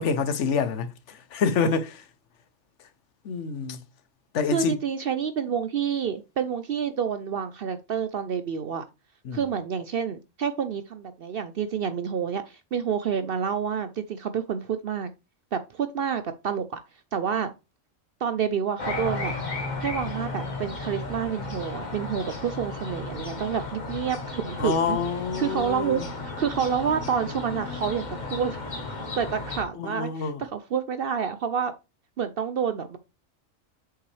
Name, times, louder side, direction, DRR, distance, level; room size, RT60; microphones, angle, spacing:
voice 1, 0.0-2.0 3.2-3.8 4.3-4.7 9.2-9.4 24.6-26.1 29.8-30.5, left 5 dB, 65° left, 1.0 m, -27 dB
voice 2, 4.5-8.8 9.3-15.1 15.5-16.8 17.1-17.5 18.2-19.3 19.8-25.0 25.4-28.0 28.3-28.6 29.2-31.7 32.2-33.0, right 7 dB, 60° right, 0.6 m, -28 dB
sound 1, 18.8-29.6, left 3 dB, 35° left, 1.5 m, -34 dB
7.4 x 5.7 x 3.2 m
omnidirectional pair, 1.4 m